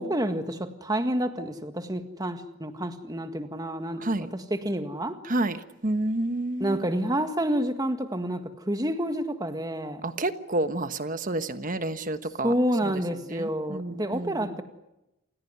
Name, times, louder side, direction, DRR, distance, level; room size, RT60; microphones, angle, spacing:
voice 1, 0.0-5.2 6.6-10.0 12.4-14.6, right 1 dB, 20° right, 7 dB, 1.8 m, -29 dB
voice 2, 5.3-6.8 10.0-12.5 12.8-12.9 13.3-14.5, right 2 dB, 40° right, 10 dB, 1.3 m, -29 dB
28.5 x 16.5 x 9.6 m, 0.94 s
head